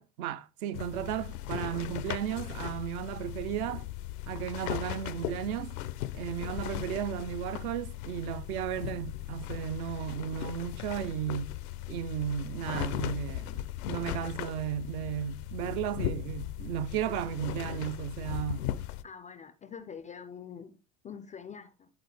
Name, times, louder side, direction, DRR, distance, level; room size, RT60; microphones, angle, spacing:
voice 1, 0.0-3.9 4.3-5.8 6.1-11.5 11.9-18.7, right 10 dB, 60° right, 0.7 m, -34 dB
sound 1, 0.7-19.0, left 14 dB, 70° left, 0.6 m, -38 dB
voice 2, 19.0-20.8 21.0-21.9, left 7 dB, 15° left, 0.3 m, -45 dB
11.0 x 3.7 x 3.3 m
figure-of-eight pair, 70°, 48 cm